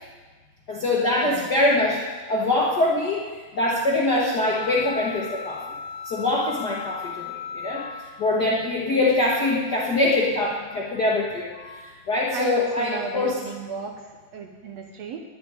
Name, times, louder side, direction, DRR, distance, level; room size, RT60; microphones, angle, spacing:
voice 1, 0.7-3.2 3.5-5.6 6.0-13.4, left 2 dB, 50° left, -4 dB, 1.2 m, -24 dB
sound 1, 4.4-8.5, left 6 dB, 80° left, 2.2 m, -36 dB
voice 2, 12.3-14.1 14.3-15.2, right 5 dB, 70° right, 3 dB, 1.8 m, -33 dB
10.5 x 7.8 x 9.4 m, 1.4 s
omnidirectional pair, 3.7 m